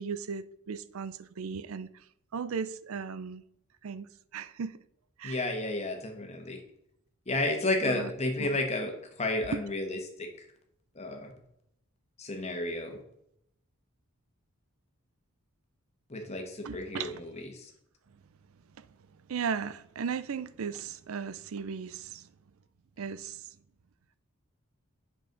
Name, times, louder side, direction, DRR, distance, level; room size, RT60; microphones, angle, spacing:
voice 1, 0.0-1.9 2.3-3.4 3.8-4.8 5.2-5.4 7.8-8.1 8.4-8.5 16.6-17.2 18.8-18.9 19.3-22.3 23.0-23.5, right 6 dB, 70° right, 0.4 m, -36 dB
voice 2, 5.2-6.6 7.3-10.3 10.9-11.3 12.2-13.0 16.1-17.7, left 2 dB, 30° left, 1.2 m, -32 dB
7.9 x 6.2 x 3.9 m
head